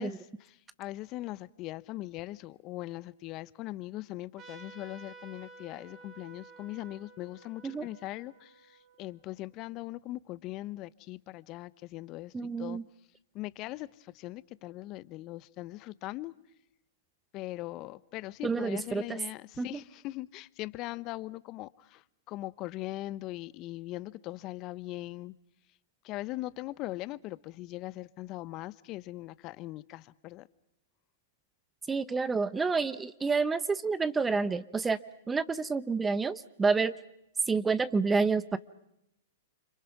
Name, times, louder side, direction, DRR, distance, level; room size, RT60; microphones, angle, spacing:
voice 1, 0.0-12.8 13.3-16.3 17.3-25.3 26.0-30.5, left 17 dB, 40° left, 0.9 m, -40 dB
Trumpet, 4.4-9.5, right 4 dB, 30° right, 3.9 m, -53 dB
voice 2, 12.3-12.8 18.4-19.2 19.6-19.8 31.9-35.0 35.3-36.9 37.5-38.6, right 4 dB, 15° right, 0.9 m, -29 dB
29.5 x 26.5 x 6.0 m
hypercardioid pair, 115°, 0 cm